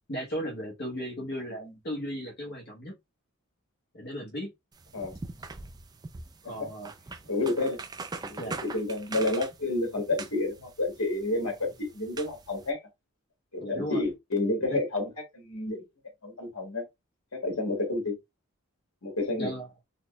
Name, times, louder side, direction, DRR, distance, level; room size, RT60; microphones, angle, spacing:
voice 1, 0.1-2.9 3.9-4.5 6.4-6.9 8.4-8.6 13.6-14.0 14.7-14.8 19.4-19.7, equal, 45° left, 1.0 m, -36 dB
sound 1, 4.7-12.7, right 3 dB, 20° right, 0.3 m, -43 dB
voice 2, 7.3-7.8 8.2-12.8 13.5-15.8 16.2-16.8 17.3-18.2 19.0-19.5, left 2 dB, 80° left, 1.8 m, -30 dB
4.1 x 2.3 x 3.1 m
head